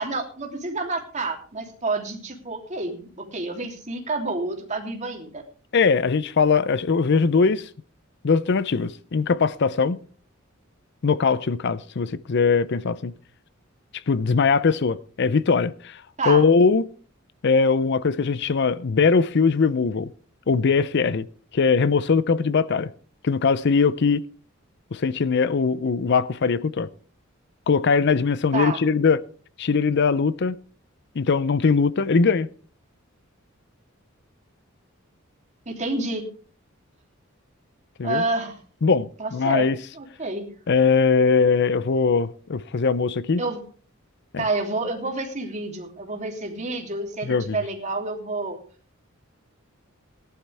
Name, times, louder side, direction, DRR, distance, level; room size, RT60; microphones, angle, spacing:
voice 1, 0.0-5.4 16.2-16.4 28.5-28.8 35.7-36.2 38.0-38.5 39.2-39.7 39.9-40.5 43.4-43.6 44.4-48.6, right 3 dB, 35° right, 3.1 m, -29 dB
voice 2, 5.7-7.7 8.2-10.0 11.0-13.1 14.1-16.8 17.4-20.1 20.5-21.3 21.5-22.9 23.2-24.2 24.9-26.9 27.7-29.2 29.6-30.6 31.2-32.5 38.0-38.2 38.8-39.8 40.7-43.4 44.3-44.4 47.2-47.6, left 5 dB, 55° left, 0.5 m, -21 dB
17.5 x 11.5 x 3.4 m
head